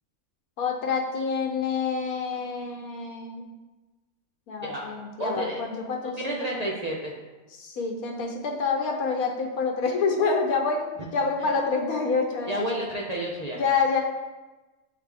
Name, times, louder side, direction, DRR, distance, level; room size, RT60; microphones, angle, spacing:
voice 1, 0.6-3.4 4.5-6.6 7.6-10.8 11.1-12.6 13.5-14.0, left 4 dB, 85° left, 1 dB, 1.4 m, -27 dB
voice 2, 5.2-5.6 6.0-7.2 11.4-11.5 12.5-13.6, right 1 dB, 40° right, -3 dB, 0.5 m, -31 dB
8.3 x 3.3 x 3.4 m, 1.2 s
omnidirectional pair, 1.5 m